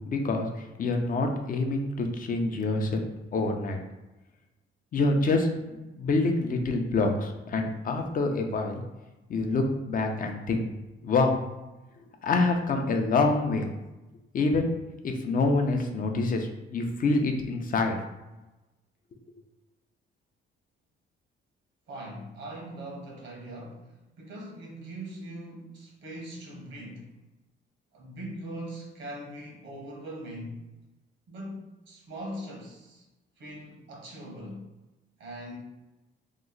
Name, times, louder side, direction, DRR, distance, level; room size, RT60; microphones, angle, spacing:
voice 1, 0.1-0.5 0.8-3.0 3.3-3.8 4.9-5.5 6.0-8.8 9.3-10.6 11.0-11.4 12.2-13.7 14.3-14.7 15.0-18.0, left 3 dB, 45° left, 4 dB, 0.6 m, -26 dB
voice 2, 21.9-27.2 27.9-30.7 31.3-33.1 33.4-34.7 35.2-35.6, right 1 dB, 70° right, -1 dB, 1.1 m, -41 dB
3.0 x 2.1 x 3.8 m, 1.0 s
cardioid pair, 90°, 20 cm